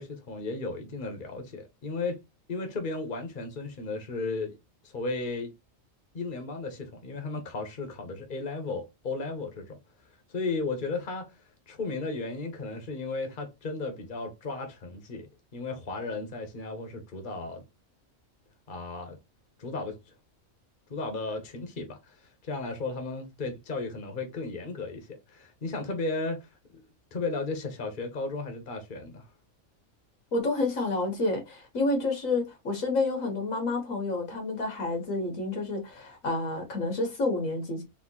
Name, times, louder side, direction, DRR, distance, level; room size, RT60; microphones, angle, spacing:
voice 1, 0.0-2.2 2.5-4.6 4.8-5.5 6.1-9.8 10.3-17.6 18.7-19.2 19.6-20.1 20.9-26.8 27.1-29.3, left 3 dB, 40° left, 1.3 m, -35 dB
voice 2, 30.3-37.8, left 2 dB, 85° left, 2.0 m, -29 dB
4.3 x 3.3 x 3.1 m
omnidirectional pair, 1.4 m